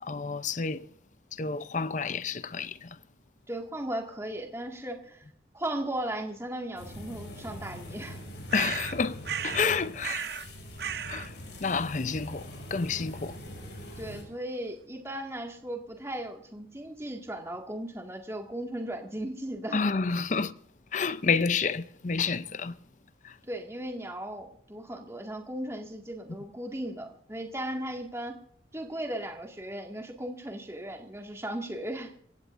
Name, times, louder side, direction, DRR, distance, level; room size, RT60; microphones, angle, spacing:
voice 1, 0.0-0.9 1.3-3.0 8.5-10.3 11.1-13.4 19.7-20.5 20.9-22.8 23.2-23.4, left 5 dB, 40° left, 0.6 m, -30 dB
voice 2, 3.5-5.3 5.5-8.2 14.0-19.8 23.5-28.4 28.7-32.1, right 1 dB, 15° right, 2.0 m, -36 dB
sound 1, 6.8-14.2, equal, 70° left, 6.1 m, -43 dB
sound 2, 8.5-9.7 10.0-10.5 10.8-11.3, right 8 dB, 60° right, 0.6 m, -35 dB
27.5 x 16.0 x 2.6 m
head